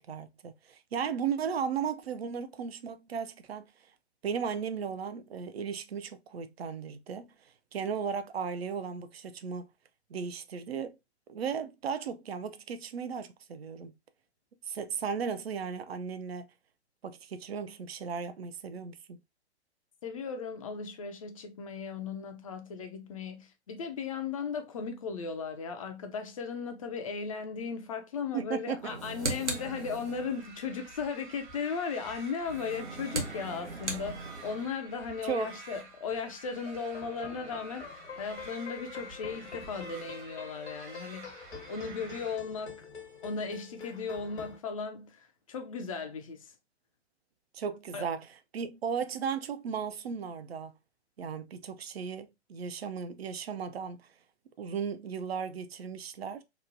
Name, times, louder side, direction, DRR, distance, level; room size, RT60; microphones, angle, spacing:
voice 1, 0.0-3.7 4.2-7.3 7.7-9.7 10.1-11.0 11.3-13.9 14.7-16.5 17.0-19.2 28.3-29.0 35.2-35.5 47.5-50.7 51.2-54.1 54.6-56.4, right 6 dB, 65° right, 0.5 m, -36 dB
voice 2, 20.0-42.8 43.2-46.5 47.9-48.1, left 5 dB, 35° left, 0.4 m, -37 dB
sound 1, 28.8-30.4 32.4-34.7, right 3 dB, 85° right, 0.8 m, -37 dB
sound 2, 29.5-42.4, right 3 dB, 45° right, 1.0 m, -49 dB
sound 3, 36.5-44.6, left 5 dB, 75° left, 1.0 m, -46 dB
3.0 x 2.1 x 2.5 m
figure-of-eight pair, 115°, 33 cm